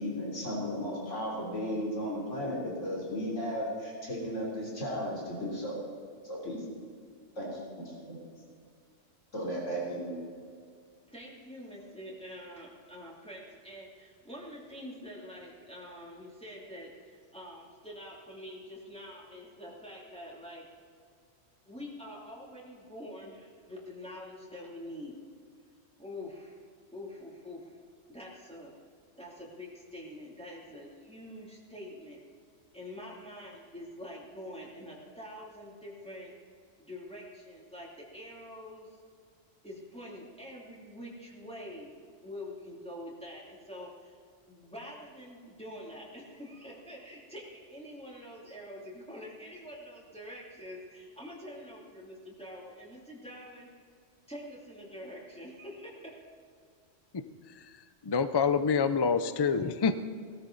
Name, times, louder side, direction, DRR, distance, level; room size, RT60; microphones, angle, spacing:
voice 1, 0.0-5.8 6.2-6.6 7.4-8.2 9.3-10.2, equal, 75° left, -4 dB, 3.7 m, -35 dB
voice 2, 11.1-20.6 21.7-25.2 26.0-26.6 26.9-27.7 28.1-28.7 29.2-32.2 32.7-36.3 36.8-38.9 39.6-41.9 42.2-44.2 44.5-53.7 54.3-56.1, left 1 dB, 5° left, -5 dB, 2.9 m, -45 dB
voice 3, 58.0-60.2, left 5 dB, 40° left, 11 dB, 0.3 m, -27 dB
18.0 x 13.5 x 4.0 m, 2.2 s
omnidirectional pair, 1.3 m